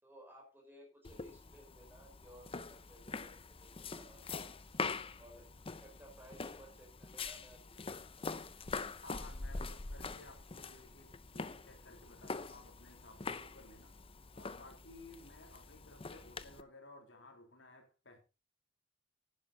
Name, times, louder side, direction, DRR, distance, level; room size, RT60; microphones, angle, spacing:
voice 1, 0.0-4.5 5.1-8.3, right 1 dB, 10° right, 5.3 m, -59 dB
sound 1, 1.0-16.6, left 4 dB, 30° left, 0.7 m, -44 dB
voice 2, 9.0-14.0 14.3-18.2, left 2 dB, 75° left, 3.5 m, -57 dB
11.0 x 10.5 x 4.1 m
head